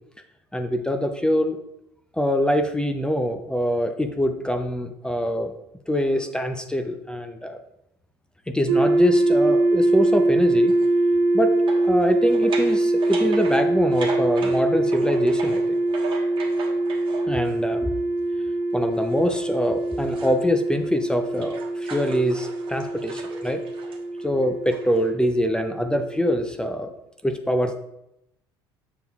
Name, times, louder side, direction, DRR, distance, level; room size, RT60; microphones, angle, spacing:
voice 1, 0.5-1.6 2.1-5.5 5.9-7.6 8.5-10.7 11.3-11.5 11.8-15.8 17.3-17.9 18.7-23.6 24.2-26.9 27.2-27.8, equal, 5° left, 7 dB, 0.6 m, -24 dB
sound 1, 8.7-26.6, right 2 dB, 80° right, 0.8 m, -23 dB
sound 2, 10.7-10.9 11.7-17.6 18.9-20.5 20.8-25.1, right 4 dB, 40° right, 1.3 m, -38 dB
6.8 x 6.2 x 2.4 m, 0.83 s
hypercardioid pair, 70°, 13 cm